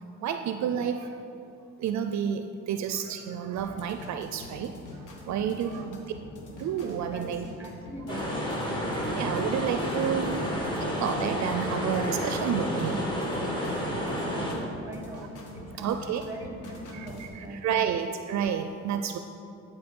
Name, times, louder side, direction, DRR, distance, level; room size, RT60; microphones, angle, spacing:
voice 1, 0.2-1.1 1.8-4.7 5.3-6.0 6.6-7.5 8.8-10.3 10.8-13.1 15.2-15.3 15.8-16.2 16.9-19.2, right 8 dB, 65° right, 8 dB, 0.5 m, -30 dB
sound 1, 3.6-17.3, left 1 dB, 85° left, 1.3 m, -45 dB
voice 2, 5.6-6.0 7.0-8.4 13.8-16.0 16.2-17.8, right 1 dB, 10° right, 1 dB, 1.5 m, -42 dB
sound 2, 8.1-14.5, equal, 15° left, 2.0 m, -30 dB
12.0 x 4.4 x 5.3 m, 2.7 s
cardioid pair, 90°, 30 cm